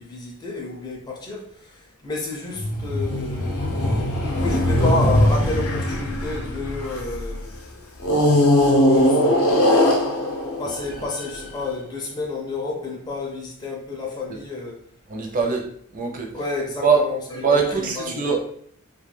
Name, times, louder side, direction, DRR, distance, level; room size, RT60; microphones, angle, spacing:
voice 1, 0.0-3.6 4.4-7.8 8.3-9.9 10.6-14.8 16.3-17.4 17.8-18.2, left 2 dB, 20° left, 0.4 m, -30 dB
sound 1, 2.6-7.3 8.0-11.4, left 1 dB, 80° left, 0.6 m, -20 dB
voice 2, 15.1-15.6 15.9-16.3 16.8-17.0 17.3-18.5, right 5 dB, 40° right, 0.5 m, -21 dB
2.3 x 2.2 x 3.1 m
head